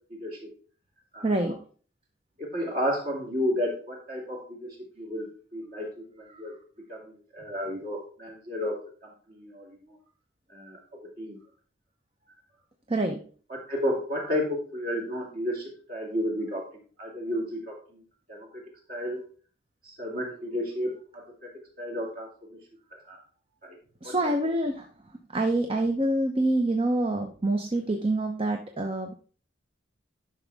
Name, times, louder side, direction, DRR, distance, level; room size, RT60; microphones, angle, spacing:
voice 1, 0.1-0.5 1.1-1.5 2.4-6.5 6.9-10.0 10.5-10.8 11.2-11.4 13.5-16.7 17.0-18.0 18.3-18.6 18.9-19.2 19.8-21.5 21.8-22.6 23.1-23.2 23.6-23.8 24.0-24.1, equal, 45° right, -1 dB, 2.8 m, -32 dB
voice 2, 1.2-1.6 6.3-6.4 12.9-13.2 24.0-24.9 25.3-29.2, right 1 dB, 30° right, 4 dB, 0.7 m, -26 dB
11.5 x 6.1 x 3.5 m, 0.42 s
head